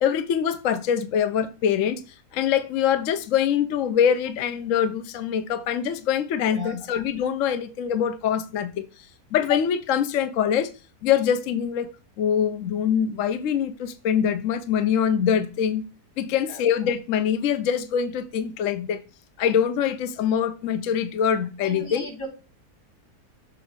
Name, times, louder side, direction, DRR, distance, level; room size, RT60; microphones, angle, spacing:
voice 1, 0.0-2.0 2.3-8.8 9.3-10.7 11.0-11.9 12.2-15.8 16.2-19.0 19.4-22.1, left 8 dB, 60° left, 0.9 m, -24 dB
voice 2, 21.6-22.3, right 1 dB, 80° left, 4.3 m, -37 dB
7.0 x 3.1 x 5.1 m
omnidirectional pair, 1.7 m